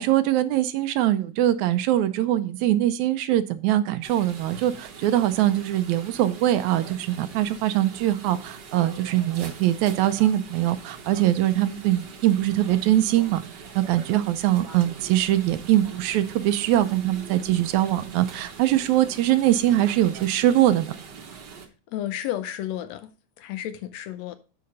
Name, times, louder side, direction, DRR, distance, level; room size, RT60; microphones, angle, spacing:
voice 1, 0.0-13.4 13.8-20.9, right 13 dB, 80° right, 2.0 m, -22 dB
sound 1, 4.0-21.7, right 5 dB, 55° right, 1.3 m, -42 dB
voice 2, 21.9-23.1 23.4-24.4, left 12 dB, 75° left, 1.7 m, -32 dB
9.4 x 5.0 x 5.3 m
omnidirectional pair, 3.4 m